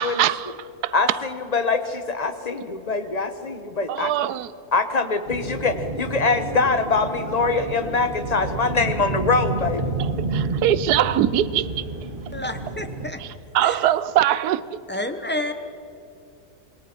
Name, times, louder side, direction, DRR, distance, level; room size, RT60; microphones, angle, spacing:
voice 1, 0.0-1.2 3.9-4.5 10.0-11.6 13.2-14.8, right 12 dB, 90° right, 1.2 m, -22 dB
voice 2, 0.9-4.1 4.7-9.9, left 4 dB, 30° left, 1.1 m, -23 dB
sound 1, 5.3-13.1, right 3 dB, 35° right, 1.8 m, -30 dB
voice 3, 12.3-13.2 13.6-13.8 14.9-15.5, left 1 dB, 10° left, 0.9 m, -29 dB
27.0 x 21.5 x 4.5 m
omnidirectional pair, 1.6 m